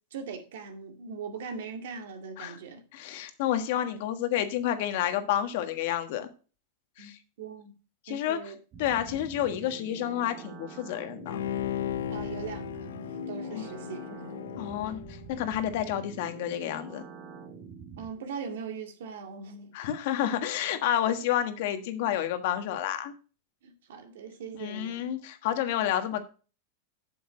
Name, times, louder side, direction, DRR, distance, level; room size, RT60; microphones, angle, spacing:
voice 1, 0.1-2.8 7.0-7.7 8.1-8.6 12.1-13.0 13.3-14.3 18.0-19.7 23.6-25.1 25.8-25.9, right 5 dB, 80° right, 2.1 m, -40 dB
voice 2, 2.9-6.3 7.0-7.2 8.0-8.5 8.8-11.4 13.5-13.6 14.6-17.0 19.7-23.1 24.6-26.2, left 11 dB, 65° left, 1.4 m, -30 dB
sound 1, 8.7-18.1, right 6 dB, 35° right, 1.6 m, -46 dB
Bowed string instrument, 11.3-15.9 16.3-16.4, left 10 dB, 90° left, 0.6 m, -36 dB
7.8 x 7.0 x 4.9 m
supercardioid pair, 130°, 0 cm